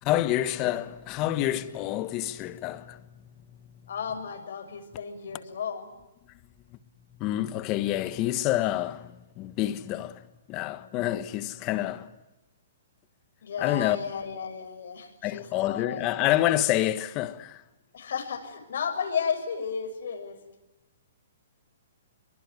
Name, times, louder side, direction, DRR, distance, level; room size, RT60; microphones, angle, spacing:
voice 1, 0.0-3.8 7.1-12.1 13.6-14.0 15.2-17.6, left 14 dB, 20° left, 1.3 m, -28 dB
voice 2, 3.9-5.9 13.4-16.2 17.9-20.4, left 6 dB, 65° left, 6.7 m, -33 dB
25.5 x 23.5 x 9.6 m
hypercardioid pair, 170°, 0 cm